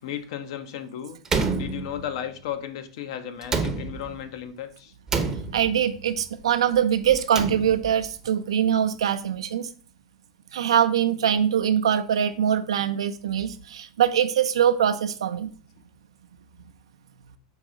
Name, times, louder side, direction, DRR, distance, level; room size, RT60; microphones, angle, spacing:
voice 1, 0.0-1.2 1.5-4.9, left 9 dB, 60° left, 9 dB, 0.6 m, -34 dB
Slam, 1.2-2.4 3.4-4.3 5.1-6.0 7.1-8.1, right 4 dB, 20° right, 0.6 m, -29 dB
voice 2, 5.5-9.7 10.5-15.5, right 9 dB, 75° right, 10 dB, 0.4 m, -23 dB
4.6 x 3.0 x 3.7 m, 0.42 s
hypercardioid pair, 100°, 3 cm